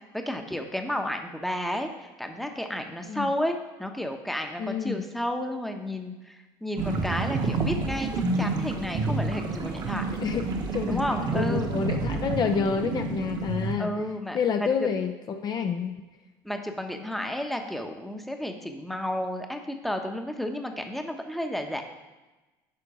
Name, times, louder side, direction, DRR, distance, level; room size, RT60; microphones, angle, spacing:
voice 1, 0.1-8.1 8.4-10.0 10.9-11.7 13.8-14.9 16.4-21.8, left 1 dB, ahead, 4 dB, 0.9 m, -32 dB
voice 2, 4.6-5.0 10.2-10.5 10.7-11.1 11.3-13.9 14.3-15.9, left 6 dB, 40° left, 6 dB, 0.6 m, -28 dB
sound 1, 6.8-13.8, right 3 dB, 40° right, 1.2 m, -29 dB
10.5 x 3.8 x 4.9 m, 1.1 s
hypercardioid pair, 80°, 11 cm